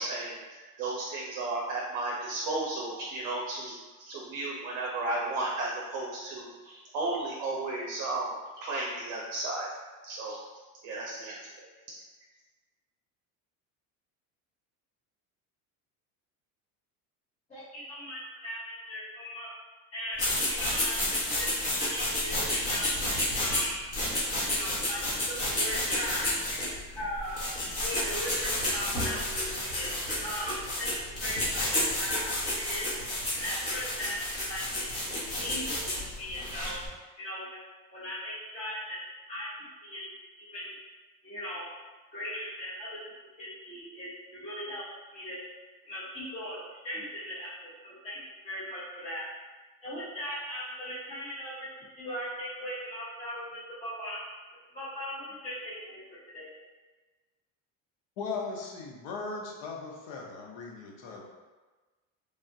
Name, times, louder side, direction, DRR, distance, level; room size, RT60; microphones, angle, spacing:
voice 1, 0.0-3.8 4.1-8.3 8.6-9.7 10.0-10.4 10.8-11.7, right 2 dB, 50° right, -3 dB, 0.6 m, -34 dB
voice 2, 17.5-19.5 19.9-23.8 24.5-27.4 27.8-29.9 30.2-30.9 31.2-31.7 32.0-32.3 32.5-32.9 33.3-34.2 34.5-36.8 37.2-37.6 37.9-39.0 39.3-39.5 39.8-40.1 40.4-40.7 41.2-41.7 42.1-43.0 43.4-44.8 45.1-45.4 45.8-48.2 48.4-49.3 49.8-51.5 51.9-53.5 53.8-54.2 54.7-56.0 56.3-56.5, equal, 15° left, -11 dB, 0.8 m, -38 dB
sound 1, 20.2-36.9, left 1 dB, 40° left, 1.2 m, -31 dB
voice 3, 58.2-61.2, left 4 dB, 70° left, 0 dB, 0.8 m, -38 dB
3.4 x 2.4 x 2.6 m, 1.3 s
cardioid pair, 140°, 39 cm